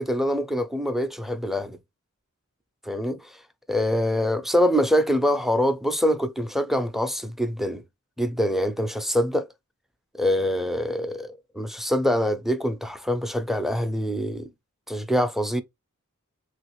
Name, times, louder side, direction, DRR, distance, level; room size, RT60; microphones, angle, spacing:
voice 1, 0.0-1.8 2.8-3.2 3.7-7.8 8.2-9.5 10.2-14.5 14.9-15.6, equal, ahead, 0.4 m, -24 dB
3.3 x 2.5 x 3.0 m
wide cardioid pair, 40°, 32 cm